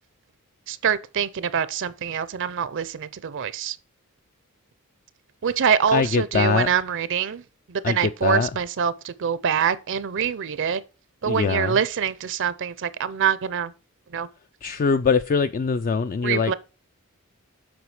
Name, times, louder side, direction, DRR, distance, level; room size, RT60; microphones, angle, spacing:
voice 1, 0.7-3.8 5.4-7.4 7.7-10.8 11.2-13.7 14.1-14.3 16.2-16.5, right 7 dB, 60° right, 0.5 m, -25 dB
voice 2, 5.9-6.7 7.8-8.5 11.3-11.8 14.6-16.5, left 5 dB, 40° left, 0.3 m, -22 dB
7.9 x 4.9 x 4.8 m
head